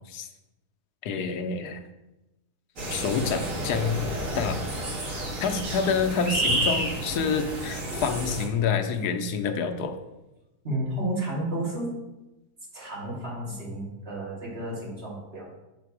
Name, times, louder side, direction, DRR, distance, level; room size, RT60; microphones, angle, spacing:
voice 1, 1.0-1.8 2.9-4.0 4.3-4.6 5.4-10.0, left 5 dB, 80° left, 6 dB, 1.2 m, -27 dB
sound 1, 2.8-8.5, right 1 dB, 55° right, 1.7 m, -30 dB
voice 2, 10.6-12.0 12.7-15.6, right 1 dB, 40° right, -6 dB, 2.3 m, -32 dB
6.7 x 4.3 x 4.7 m, 1.0 s
omnidirectional pair, 1.7 m